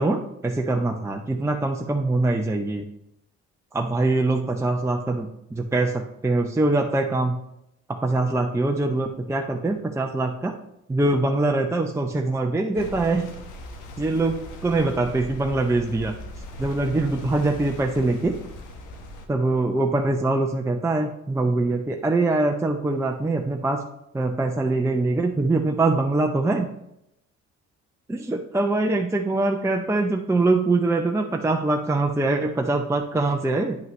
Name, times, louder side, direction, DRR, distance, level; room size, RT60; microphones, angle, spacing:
voice 1, 0.0-2.8 3.7-7.4 7.9-10.5 10.9-13.3 14.0-16.1 16.6-18.3 19.3-23.8 24.1-26.7 28.1-33.8, right 2 dB, 10° right, 2 dB, 0.6 m, -23 dB
sound 1, 12.7-19.3, left 1 dB, 90° left, 1.0 m, -39 dB
9.2 x 5.5 x 3.2 m, 0.81 s
cardioid pair, 90°, 30 cm